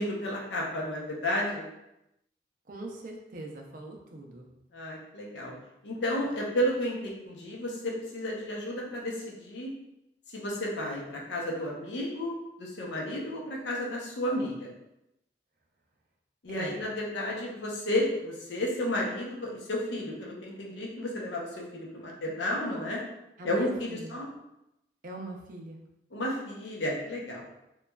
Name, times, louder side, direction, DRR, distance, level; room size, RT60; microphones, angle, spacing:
voice 1, 0.0-1.6 4.7-5.5 5.8-9.7 10.3-14.7 16.4-23.0 23.4-24.3 26.1-27.4, left 1 dB, 80° left, -2 dB, 0.6 m, -32 dB
voice 2, 2.7-4.5 16.5-16.8 23.4-24.2 25.0-25.8, right 1 dB, 45° right, 0 dB, 0.4 m, -41 dB
3.0 x 2.3 x 2.2 m, 0.89 s
head